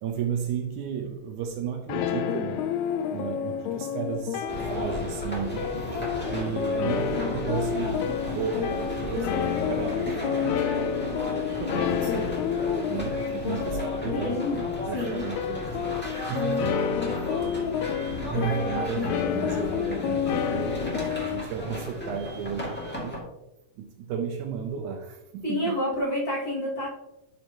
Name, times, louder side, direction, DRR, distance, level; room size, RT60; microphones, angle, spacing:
voice 1, 0.0-2.7 3.1-5.7 6.3-11.0 11.5-12.4 12.9-14.4 14.9-15.9 16.3-16.7 18.3-20.8 21.2-23.2 23.8-25.8, right 7 dB, 75° right, 5 dB, 2.0 m, -34 dB
sound 1, 1.9-21.5, left 8 dB, 85° left, 1.6 m, -29 dB
sound 2, 4.5-23.2, equal, 5° left, 1.6 m, -34 dB
voice 2, 11.6-12.0 14.1-14.6 14.9-15.3 16.3-16.6 18.4-19.1 25.4-26.9, left 1 dB, 40° left, -5 dB, 2.5 m, -30 dB
11.5 x 5.5 x 2.9 m, 0.91 s
omnidirectional pair, 3.8 m